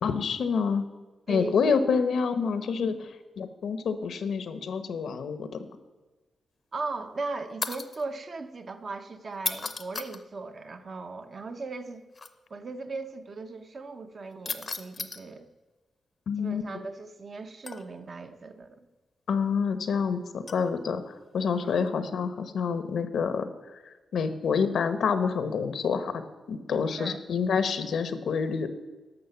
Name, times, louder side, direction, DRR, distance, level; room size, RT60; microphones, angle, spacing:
voice 1, 0.0-0.9 1.3-5.5 16.3-16.6 19.3-23.5 24.1-26.2 26.5-28.7, left 5 dB, 75° left, 10 dB, 0.9 m, -27 dB
voice 2, 1.3-1.8 6.7-12.0 12.5-15.5 16.4-18.9 21.7-21.8 27.0-27.2, right 3 dB, 45° right, 7 dB, 0.9 m, -38 dB
sound 1, 7.6-8.0 9.3-10.2 12.1-12.3 14.5-15.2 17.7-18.1 20.5-20.7 21.6-21.9, left 4 dB, 40° left, 0.7 m, -35 dB
11.0 x 6.6 x 6.9 m, 1.2 s
wide cardioid pair, 115°, 0 cm